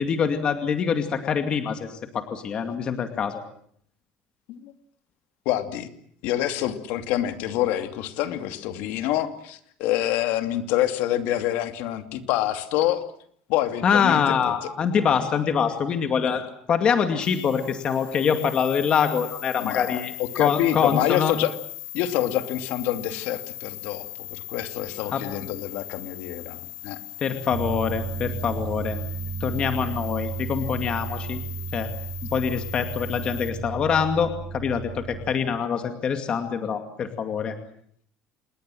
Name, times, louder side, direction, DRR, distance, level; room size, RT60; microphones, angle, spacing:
voice 1, 0.0-3.4 13.8-20.1 20.4-21.3 25.1-25.2 27.2-29.0 29.4-31.4 31.7-31.9 32.3-37.5, left 7 dB, 25° left, 6 dB, 2.4 m, -24 dB
voice 2, 5.4-5.9 6.2-13.0 13.5-14.7 16.2-16.4 19.6-21.5 21.9-27.0, left 13 dB, 65° left, 8 dB, 2.6 m, -27 dB
sound 1, 17.2-33.5, left 18 dB, 85° left, 4.5 m, -39 dB
sound 2, 27.5-35.3, right 6 dB, 25° right, 3.9 m, -33 dB
27.5 x 21.5 x 7.7 m, 0.64 s
cardioid pair, 180°, 4 cm